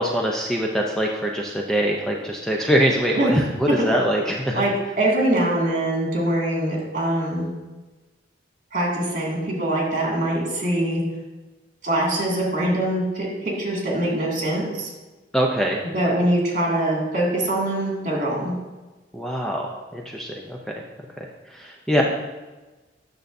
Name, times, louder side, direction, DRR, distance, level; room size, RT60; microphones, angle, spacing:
voice 1, 0.0-4.6 15.3-15.9 19.1-20.6 21.5-22.0, equal, 5° left, -1 dB, 0.5 m, -23 dB
voice 2, 4.5-7.5 8.7-11.0 11.8-14.9 15.8-18.5, right 1 dB, 45° right, -3 dB, 2.1 m, -23 dB
8.7 x 6.5 x 2.6 m, 1.2 s
head